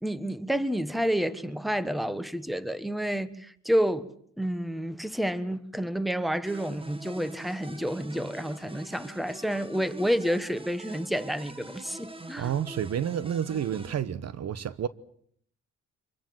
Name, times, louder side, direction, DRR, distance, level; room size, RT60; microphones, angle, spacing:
voice 1, 0.0-4.1 4.4-12.5, equal, ahead, 1.3 m, -29 dB
sound 1, 6.5-14.0, right 2 dB, 20° right, 2.0 m, -45 dB
voice 2, 12.4-14.9, right 9 dB, 60° right, 1.1 m, -30 dB
25.0 x 23.5 x 7.8 m
cardioid pair, 90°, 30 cm